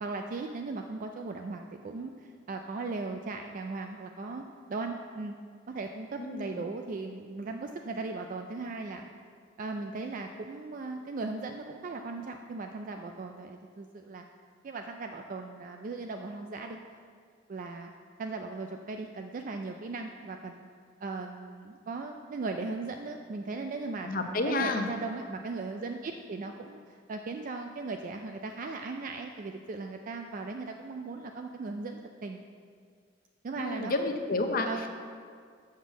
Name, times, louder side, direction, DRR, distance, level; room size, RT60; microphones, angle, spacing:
voice 1, 0.0-4.4 4.7-5.3 5.7-9.1 9.6-14.2 14.6-16.8 17.5-17.9 18.2-20.7 21.0-24.1 24.5-32.4 33.4-34.2 34.6-34.9, right 3 dB, 45° right, 4 dB, 0.4 m, -38 dB
voice 2, 6.2-6.6 24.0-24.9 33.6-34.7, left 3 dB, 50° left, 5 dB, 0.7 m, -30 dB
7.3 x 6.1 x 6.1 m, 2.1 s
head